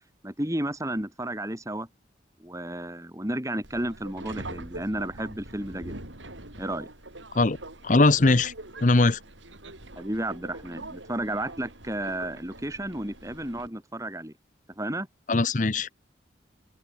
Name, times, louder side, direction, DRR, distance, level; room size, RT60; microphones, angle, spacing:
voice 1, 0.2-1.9 2.4-6.0 6.6-6.9 10.0-14.3 14.8-15.1, right 1 dB, 15° right, 3.5 m, -32 dB
Subway metro underground, 3.6-13.7, right 2 dB, 90° right, 7.2 m, -43 dB
voice 2, 7.8-8.5 8.8-9.2 15.3-15.9, left 3 dB, 45° left, 0.8 m, -20 dB
open air
head